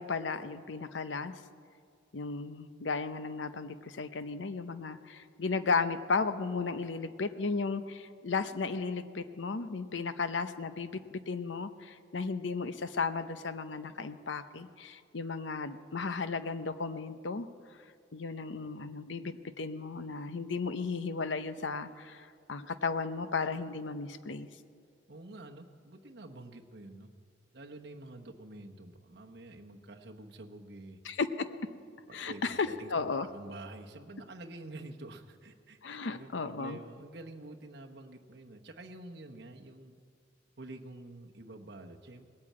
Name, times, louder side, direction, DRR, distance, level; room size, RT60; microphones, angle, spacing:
voice 1, 0.0-1.4 2.1-17.5 18.1-24.5 31.0-31.3 32.1-33.3 35.8-36.8, left 4 dB, 90° left, 12 dB, 0.7 m, -35 dB
voice 2, 25.1-27.1 27.5-31.0 32.1-35.8 36.1-40.0 40.6-42.3, right 2 dB, 60° right, 2 dB, 1.1 m, -48 dB
18.5 x 8.7 x 8.6 m, 2.3 s
head